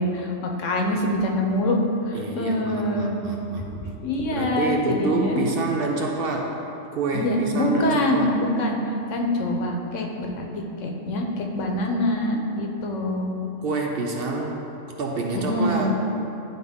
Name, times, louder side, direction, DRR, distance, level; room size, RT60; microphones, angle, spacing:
voice 1, 0.0-3.2 3.8-5.4 7.1-8.8 9.1-10.5 10.8-13.3 15.5-15.9, left 1 dB, 75° left, 1 dB, 1.1 m, -25 dB
voice 2, 2.1-3.7 4.2-6.6 6.9-8.3 13.6-14.7 15.0-15.9, right 3 dB, 60° right, 1 dB, 0.7 m, -27 dB
10.5 x 4.0 x 3.5 m, 2.9 s
omnidirectional pair, 1.3 m